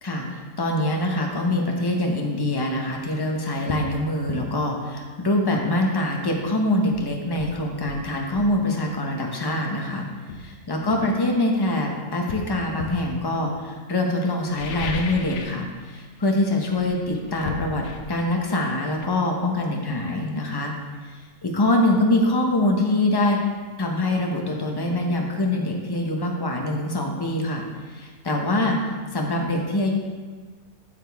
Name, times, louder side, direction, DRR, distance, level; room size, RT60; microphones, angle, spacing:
voice 1, 0.0-10.1 10.4-20.7 21.1-23.4 23.8-27.6 27.9-28.8 29.1-29.9, left 1 dB, 20° left, 1 dB, 0.7 m, -24 dB
sound 1, 3.7-3.9 4.3-4.5 6.4-6.5 6.9-8.6 9.6-9.8 10.3-11.7 12.3-13.1 14.4-15.7 15.9-16.3 16.6-20.2 20.5-20.6, left 4 dB, 60° left, 0.9 m, -36 dB
8.6 x 6.8 x 3.5 m, 1.4 s
omnidirectional pair, 1.5 m